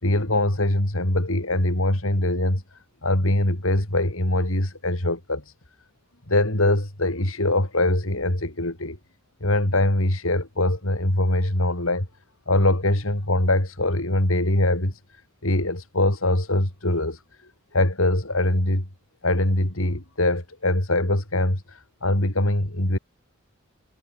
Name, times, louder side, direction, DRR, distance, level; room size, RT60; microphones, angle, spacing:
voice 1, 0.0-2.6 3.0-5.5 6.3-9.0 9.4-12.1 12.5-15.0 15.4-17.2 17.7-18.8 19.2-23.0, left 1 dB, 75° left, 4.3 m, -23 dB
head